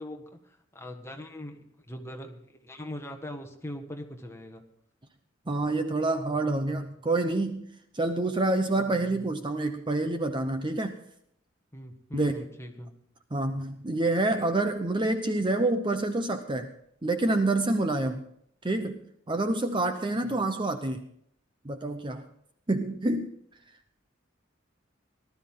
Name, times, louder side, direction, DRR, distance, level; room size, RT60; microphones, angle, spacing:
voice 1, 0.0-4.6 8.7-9.4 11.7-12.9 20.1-20.4, left 1 dB, 15° left, 3 dB, 1.6 m, -41 dB
voice 2, 5.5-7.6 7.9-11.0 12.1-12.4 13.3-16.7 17.0-18.3 18.6-19.0 19.3-21.0 21.6-22.3 22.7-23.3, right 2 dB, 25° right, 7 dB, 0.8 m, -27 dB
19.0 x 12.5 x 3.8 m, 0.68 s
head